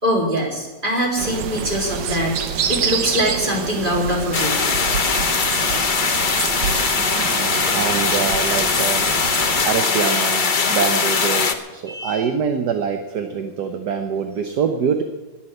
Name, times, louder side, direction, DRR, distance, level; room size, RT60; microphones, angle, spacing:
voice 1, 0.0-2.3 2.7-4.6 11.9-12.2, equal, 25° right, -3 dB, 4.1 m, -22 dB
sound 1, 1.2-9.6, right 7 dB, 80° right, 1.6 m, -27 dB
sound 2, 4.3-11.5, left 5 dB, 35° left, 0.8 m, -20 dB
voice 2, 6.8-9.1 9.6-15.0, right 6 dB, 65° right, 6 dB, 1.5 m, -25 dB
20.5 x 7.6 x 7.9 m, 1.2 s
omnidirectional pair, 2.0 m